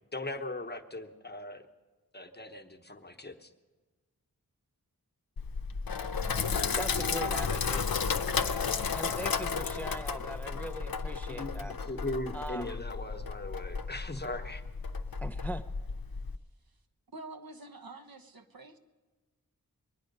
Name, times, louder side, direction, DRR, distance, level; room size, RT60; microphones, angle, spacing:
voice 1, 0.1-1.7 2.1-3.5 11.3-14.6, left 2 dB, 30° left, 5 dB, 1.0 m, -39 dB
Sink (filling or washing), 5.4-16.4, left 5 dB, 75° left, 0.7 m, -33 dB
voice 2, 6.7-7.9 8.9-11.8 12.3-12.8 15.2-15.6, right 1 dB, 5° left, 7 dB, 0.5 m, -40 dB
voice 3, 17.1-18.8, right 2 dB, 75° right, 4 dB, 1.1 m, -47 dB
22.5 x 9.9 x 5.3 m, 1.3 s
wide cardioid pair, 45°, 36 cm